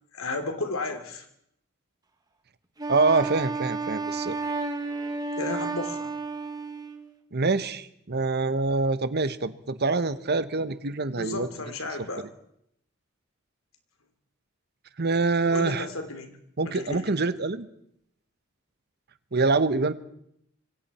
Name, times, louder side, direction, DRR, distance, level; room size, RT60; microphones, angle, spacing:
voice 1, 0.1-1.3 5.4-6.1 11.1-12.3 15.5-16.4 16.6-17.1, left 2 dB, 85° left, 7 dB, 3.1 m, -33 dB
Wind instrument woodwind instrument, 2.8-7.1, right 3 dB, 20° right, 1.9 m, -32 dB
voice 2, 2.9-4.5 7.3-11.5 15.0-15.9 16.6-17.7 19.3-19.9, right 3 dB, 50° right, 13 dB, 1.1 m, -25 dB
26.0 x 22.5 x 4.4 m, 0.73 s
head